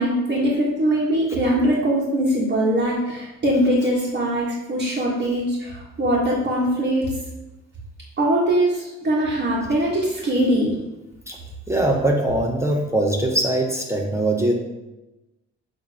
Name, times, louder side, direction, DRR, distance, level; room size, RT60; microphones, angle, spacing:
voice 1, 0.0-7.1 8.2-10.8, right 1 dB, 40° right, -7 dB, 1.7 m, -21 dB
voice 2, 11.3-14.5, right 1 dB, 10° right, 0 dB, 0.9 m, -22 dB
7.2 x 3.9 x 3.6 m, 1.0 s
cardioid pair, 90°, 30 cm